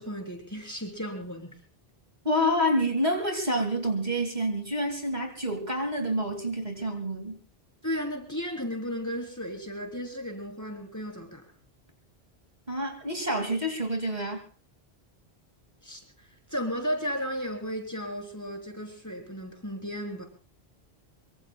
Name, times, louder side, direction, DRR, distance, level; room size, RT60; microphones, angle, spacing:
voice 1, 0.0-1.6 7.8-11.4 15.8-16.0 16.5-20.3, equal, 15° left, 2 dB, 3.5 m, -34 dB
voice 2, 2.2-7.4 12.7-14.4, equal, 40° right, 4 dB, 2.5 m, -28 dB
24.0 x 24.0 x 2.3 m, 0.38 s
omnidirectional pair, 1.1 m